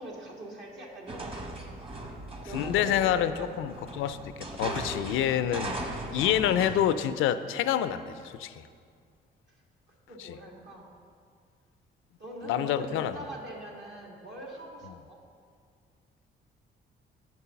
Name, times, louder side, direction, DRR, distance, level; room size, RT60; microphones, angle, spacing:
voice 1, 0.0-2.1 2.4-3.8 9.5-9.6 10.1-10.9 12.2-15.2, right 1 dB, 65° right, -3 dB, 1.8 m, -43 dB
sound 1, 1.1-6.8, right 2 dB, 25° right, 1.1 m, -38 dB
voice 2, 2.5-4.2 4.6-8.7 12.4-13.2, left 10 dB, 85° left, 11 dB, 0.4 m, -27 dB
8.0 x 4.7 x 6.9 m, 2.2 s
cardioid pair, 90°, 20 cm